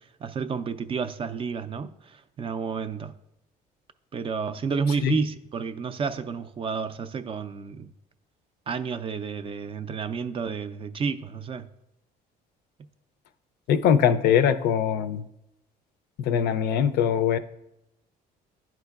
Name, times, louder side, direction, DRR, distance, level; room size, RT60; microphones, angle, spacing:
voice 1, 0.2-3.1 4.1-7.9 8.7-11.7, right 5 dB, 30° right, 11 dB, 0.3 m, -31 dB
voice 2, 13.7-15.2 16.2-17.4, left 8 dB, 70° left, 11 dB, 0.4 m, -22 dB
10.5 x 4.5 x 2.3 m, 0.85 s
cardioid pair, 110°, 17 cm